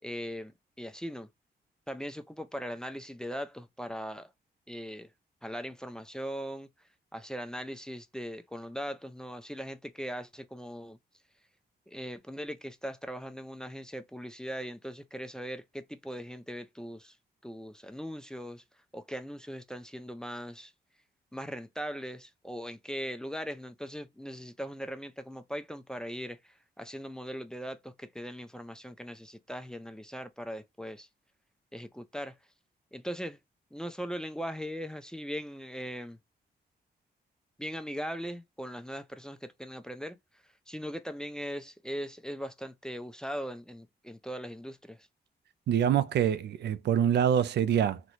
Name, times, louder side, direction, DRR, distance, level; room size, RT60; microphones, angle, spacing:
voice 1, 0.0-1.3 1.9-4.3 4.7-5.1 5.4-6.7 7.1-11.0 11.9-17.2 17.4-18.6 18.9-20.7 21.3-31.1 31.7-32.4 32.9-33.4 33.7-36.2 37.6-40.2 40.7-45.1, equal, 5° left, 0.3 m, -39 dB
voice 2, 45.7-48.0, right 9 dB, 80° right, 0.4 m, -25 dB
3.9 x 2.1 x 2.9 m
wide cardioid pair, 175°, 17 cm